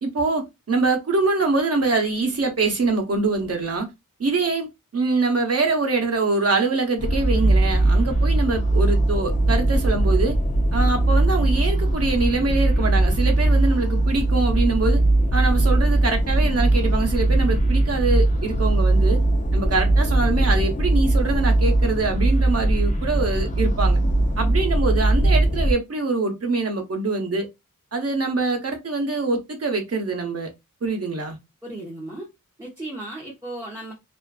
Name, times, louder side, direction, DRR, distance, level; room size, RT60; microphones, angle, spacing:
voice 1, 0.0-3.9 4.2-4.7 4.9-10.4 10.7-15.0 15.3-19.2 19.5-24.0 24.4-27.5 27.9-30.5 30.8-31.4, right 3 dB, 45° right, 0.8 m, -24 dB
sound 1, 7.0-25.7, right 2 dB, 25° left, 0.5 m, -20 dB
voice 2, 31.6-32.3 32.6-33.9, right 1 dB, 10° right, 0.9 m, -35 dB
2.5 x 2.4 x 2.3 m
wide cardioid pair, 80°, 34 cm